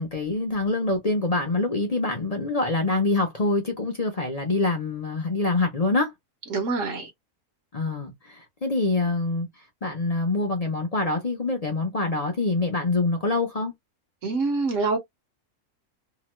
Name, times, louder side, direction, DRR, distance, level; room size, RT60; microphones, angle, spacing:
voice 1, 0.0-6.1 7.7-9.5 9.8-13.7, left 2 dB, 40° left, 0.6 m, -25 dB
voice 2, 6.5-7.1 14.2-15.0, right 3 dB, 60° right, 1.1 m, -25 dB
2.8 x 2.2 x 2.9 m
omnidirectional pair, 1.6 m